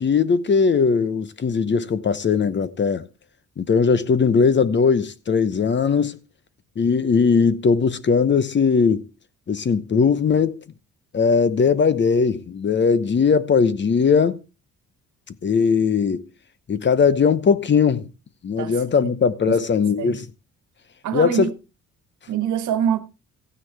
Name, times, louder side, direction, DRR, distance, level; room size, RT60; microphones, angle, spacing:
voice 1, 0.0-3.0 3.6-6.2 6.8-9.0 9.5-10.6 11.1-14.4 15.4-16.2 16.7-18.1 18.4-20.3 21.1-21.5, left 5 dB, 40° left, 0.9 m, -19 dB
voice 2, 21.0-21.5 22.3-23.0, right 9 dB, 75° right, 1.4 m, -24 dB
15.0 x 9.6 x 3.4 m
cardioid pair, 90°, 30 cm